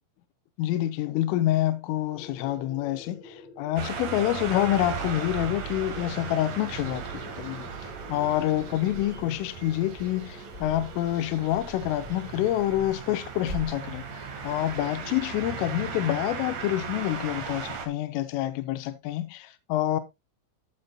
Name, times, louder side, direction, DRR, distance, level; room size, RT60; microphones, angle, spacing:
voice 1, 0.6-14.0 14.4-20.0, left 13 dB, 85° left, 3.3 m, -27 dB
sound 1, 2.1-12.6, left 2 dB, 40° left, 2.9 m, -49 dB
sound 2, 3.8-17.9, right 6 dB, 55° right, 2.5 m, -37 dB
sound 3, 8.8-9.4 9.7-11.2 11.5-13.7, right 2 dB, 25° right, 6.4 m, -43 dB
14.0 x 6.8 x 2.3 m
omnidirectional pair, 5.8 m